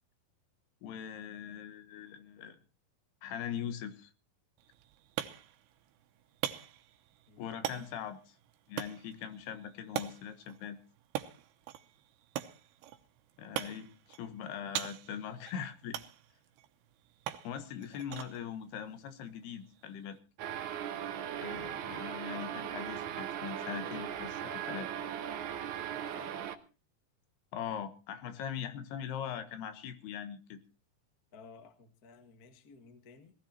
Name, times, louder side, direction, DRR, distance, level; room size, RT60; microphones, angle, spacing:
voice 1, 0.8-2.6 3.2-4.1 7.4-8.2 8.7-10.8 13.4-13.9 14.2-16.0 17.4-20.2 21.3-24.9 27.5-30.6, left 8 dB, 90° left, 9 dB, 3.4 m, -41 dB
sound 1, 4.6-20.2, right 12 dB, 85° right, 3.0 m, -43 dB
sound 2, 20.4-26.6, right 10 dB, 65° right, 2.1 m, -38 dB
voice 2, 25.8-26.5 31.3-33.3, left 4 dB, 50° left, 7 dB, 1.1 m, -55 dB
18.5 x 13.5 x 4.4 m, 0.35 s
omnidirectional pair, 4.5 m